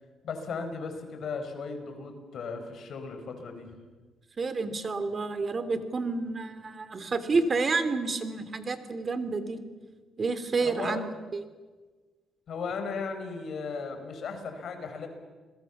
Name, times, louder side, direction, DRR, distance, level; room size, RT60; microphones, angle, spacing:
voice 1, 0.2-3.7 10.6-11.0 12.5-15.1, left 5 dB, 60° left, 6 dB, 5.0 m, -36 dB
voice 2, 4.4-9.6 10.2-11.0 11.3-11.4, right 4 dB, 35° right, 11 dB, 2.8 m, -29 dB
29.0 x 21.5 x 7.3 m, 1.4 s
cardioid pair, 90°, 0 cm